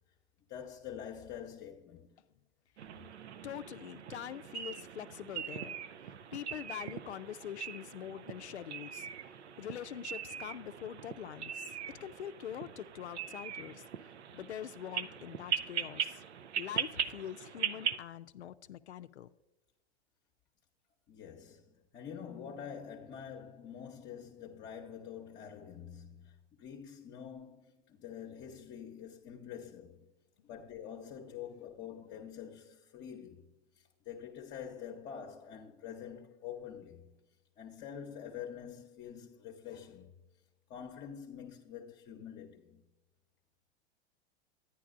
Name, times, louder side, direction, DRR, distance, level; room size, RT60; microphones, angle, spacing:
voice 1, 0.5-2.1 21.1-30.1 30.4-33.5 33.8-37.1 37.6-40.2 40.7-42.8, left 8 dB, 30° left, 0.8 m, -46 dB
sound 1, 2.8-18.0, right 8 dB, 85° right, 0.6 m, -40 dB
voice 2, 3.4-9.3 9.6-16.2 16.6-19.3, left 10 dB, 90° left, 0.5 m, -44 dB
10.0 x 9.9 x 2.5 m
hypercardioid pair, 105°, 33 cm